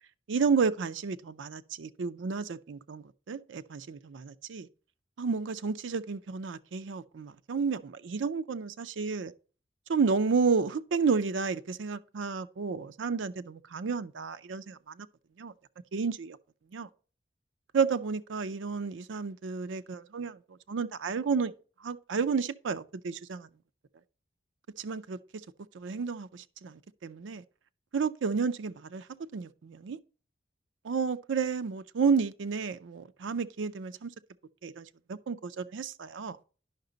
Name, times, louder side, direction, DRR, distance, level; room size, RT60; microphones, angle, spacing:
voice 1, 0.3-4.7 5.2-9.3 9.9-15.1 15.4-15.5 15.9-16.4 16.7-16.9 17.7-20.4 20.7-21.5 21.8-23.5 24.8-25.2 25.7-27.4 27.9-29.1 29.3-30.0 30.8-34.1 34.6-36.4, right 5 dB, 80° right, 0.5 m, -31 dB
10.5 x 5.8 x 3.8 m
head